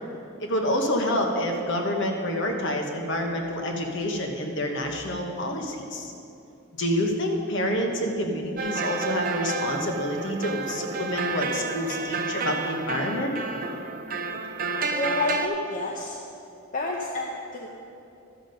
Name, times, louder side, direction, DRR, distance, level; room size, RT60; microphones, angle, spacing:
voice 1, 0.4-6.1 6.8-13.3, left 1 dB, 55° left, 2 dB, 1.1 m, -28 dB
sound 1, 8.6-15.5, right 4 dB, 40° right, 0.5 m, -31 dB
voice 2, 14.9-16.2 16.7-17.7, left 2 dB, 35° left, -1 dB, 0.7 m, -29 dB
12.0 x 7.3 x 5.2 m, 2.7 s
head